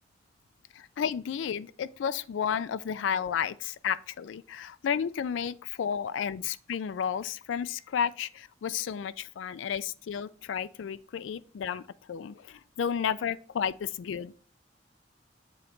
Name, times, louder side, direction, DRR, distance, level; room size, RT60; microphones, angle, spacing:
voice 1, 0.7-11.8 12.1-14.3, left 8 dB, 80° left, 0.3 m, -32 dB
7.2 x 3.8 x 4.4 m
head